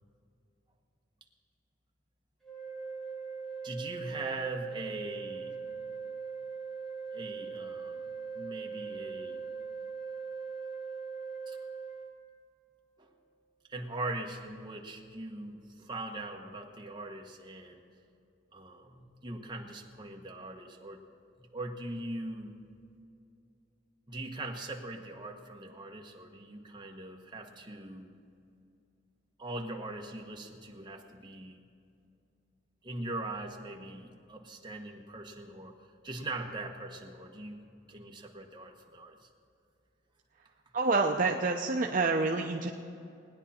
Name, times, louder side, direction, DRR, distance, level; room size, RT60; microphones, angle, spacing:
sound 1, 2.4-12.1, right 5 dB, ahead, 1.3 m, -40 dB
voice 1, 3.6-5.6 7.1-8.0 8.3-9.4 11.5-11.6 13.0-13.1 13.7-17.8 18.5-21.0 21.4-22.5 24.1-28.1 29.4-31.6 32.8-37.6 37.9-39.3, right 2 dB, 25° right, 1 dB, 1.3 m, -41 dB
voice 2, 40.7-42.7, right 3 dB, 45° right, 1 dB, 0.6 m, -27 dB
19.5 x 9.9 x 4.3 m, 2.5 s
head